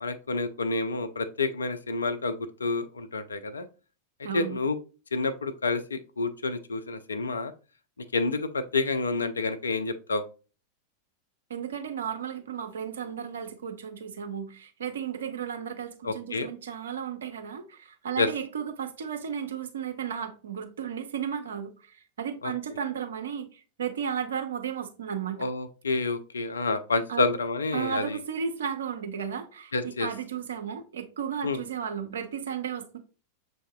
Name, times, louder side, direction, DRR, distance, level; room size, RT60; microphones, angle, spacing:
voice 1, 0.0-2.3 2.6-3.7 4.3-4.8 5.1-7.5 8.1-10.2 16.0-16.5 18.2-18.3 22.4-22.5 25.4-28.2 29.7-30.1 31.4-31.6, left 3 dB, 75° left, 0.4 m, -28 dB
voice 2, 4.2-4.6 11.5-25.4 27.1-27.2 27.7-33.0, right 8 dB, 65° right, 0.5 m, -34 dB
6.3 x 2.7 x 2.2 m
figure-of-eight pair, 90°, 0 cm